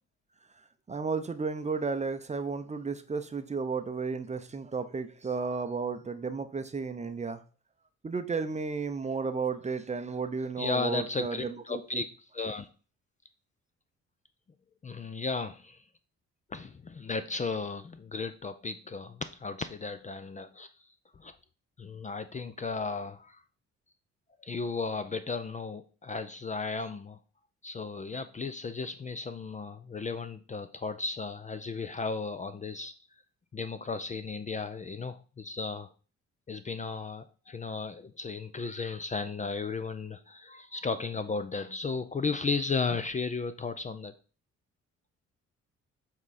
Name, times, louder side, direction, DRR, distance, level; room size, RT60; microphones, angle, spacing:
voice 1, 0.9-7.4 8.0-12.0, right 4 dB, 25° right, 10 dB, 0.6 m, -33 dB
voice 2, 10.6-12.0 12.3-12.7 14.8-15.8 16.5-20.7 21.2-21.3 21.8-23.4 24.4-27.2 27.6-32.9 33.5-35.9 36.5-44.1, left 4 dB, 25° left, 11 dB, 0.4 m, -35 dB
7.1 x 3.7 x 4.1 m, 0.37 s
cardioid pair, 90°, 30 cm